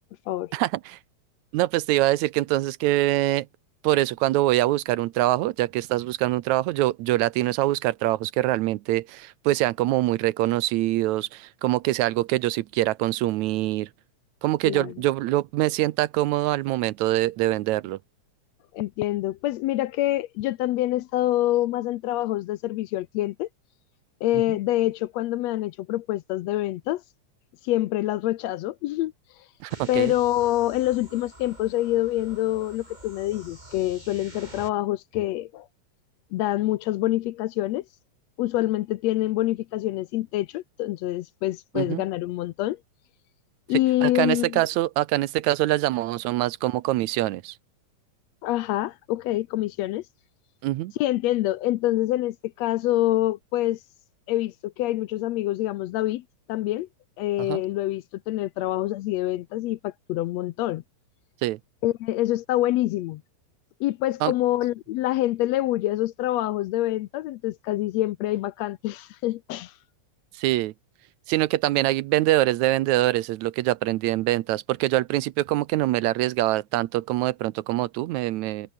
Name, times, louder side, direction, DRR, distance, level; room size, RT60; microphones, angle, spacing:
voice 1, 0.5-1.0 1.5-3.5 3.8-13.9 14.4-18.0 29.6-30.1 41.8-42.0 44.0-47.5 50.6-50.9 57.4-57.6 61.4-61.6 64.2-64.3 70.4-70.7 71.3-78.7, right 16 dB, 80° right, 2.0 m, -24 dB
voice 2, 18.7-23.5 24.2-27.0 27.6-29.1 29.9-35.7 36.3-37.9 38.4-42.8 43.7-44.6 48.4-50.0 51.0-53.8 54.3-56.2 56.5-56.9 57.2-60.8 61.8-63.2 63.8-69.7, left 15 dB, 75° left, 1.7 m, -26 dB
sound 1, 29.7-34.7, right 1 dB, 15° right, 4.0 m, -47 dB
omnidirectional pair, 3.4 m